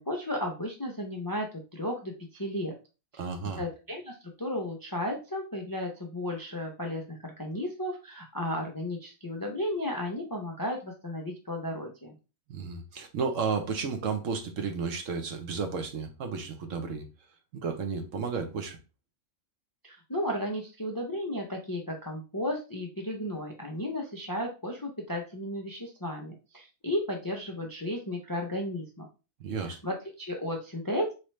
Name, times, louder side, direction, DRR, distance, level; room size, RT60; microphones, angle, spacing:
voice 1, 0.0-2.7 3.1-3.2 3.6-12.2 19.8-29.1 29.6-31.1, left 1 dB, 30° left, 0.4 m, -34 dB
voice 2, 3.2-3.6 12.5-17.0 17.5-18.8 29.4-29.8, right 5 dB, 70° right, 1.2 m, -32 dB
4.3 x 3.2 x 3.1 m
omnidirectional pair, 1.4 m